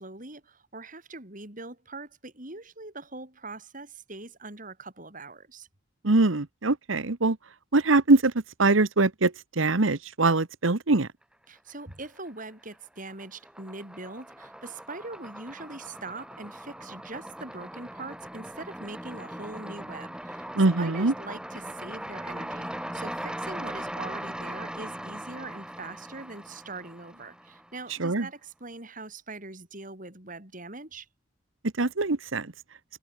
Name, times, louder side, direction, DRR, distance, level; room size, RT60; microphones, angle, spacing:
voice 1, 0.0-5.7 11.5-20.5 20.8-31.1, right 2 dB, 40° right, 5.0 m, -42 dB
voice 2, 6.0-7.4 7.7-8.3 8.6-11.1 20.6-21.1 28.0-28.3 31.8-32.5, right 3 dB, 80° right, 1.2 m, -23 dB
sound 1, 11.7-12.4 12.7-27.9, right 1 dB, 5° right, 7.3 m, -40 dB
head